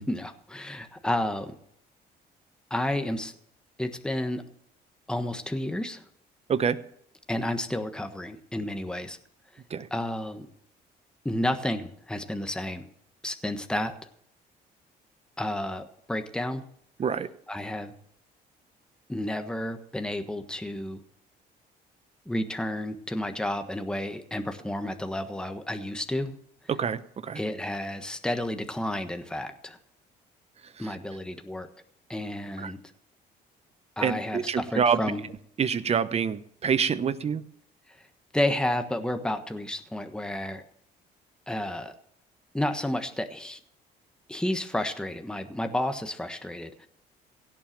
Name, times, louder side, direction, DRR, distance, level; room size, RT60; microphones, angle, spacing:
voice 1, 0.0-1.6 2.7-3.3 3.8-4.4 5.1-6.0 7.3-9.2 9.5-9.6 9.9-10.5 11.2-12.9 13.2-13.9 15.4-16.6 17.5-17.9 19.1-21.0 22.2-26.3 27.3-29.8 30.8-31.7 32.1-32.8 34.0-35.3 37.9-38.0 38.3-40.6 41.5-41.9 42.5-43.6 44.3-46.9, left 1 dB, 5° left, 7 dB, 1.3 m, -31 dB
voice 2, 26.7-27.4 30.8-30.9 32.6-32.7 34.0-35.0 35.6-37.4, right 7 dB, 40° right, 14 dB, 0.9 m, -26 dB
17.0 x 7.3 x 7.4 m, 0.69 s
cardioid pair, 100°, 17 cm